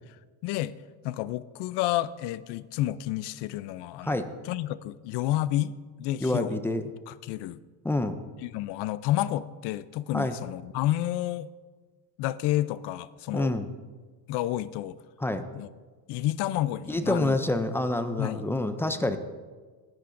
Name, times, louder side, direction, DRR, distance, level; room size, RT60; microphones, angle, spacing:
voice 1, 0.4-0.8 1.0-5.7 6.0-6.6 7.1-7.6 8.4-11.5 12.2-13.6 14.3-15.0 15.5-15.7 16.1-17.4 18.2-18.4, left 14 dB, 65° left, 17 dB, 0.6 m, -30 dB
voice 2, 6.2-6.8 7.8-8.2 10.1-10.4 13.3-13.7 15.2-15.4 16.9-19.2, left 1 dB, 5° left, 9 dB, 0.3 m, -27 dB
19.0 x 10.5 x 2.6 m, 1.4 s
cardioid pair, 140°, 45 cm